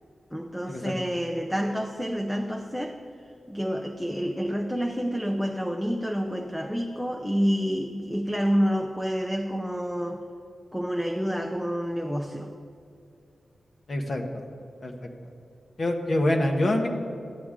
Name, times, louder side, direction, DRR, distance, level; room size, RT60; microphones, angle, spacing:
voice 1, 0.3-3.0 3.5-10.2 10.7-12.5, equal, 5° left, 3 dB, 0.5 m, -28 dB
voice 2, 13.9-14.2 14.8-14.9 15.8-16.9, left 1 dB, 45° left, 4 dB, 1.0 m, -25 dB
13.0 x 8.6 x 3.7 m, 2.5 s
wide cardioid pair, 145°, 0 cm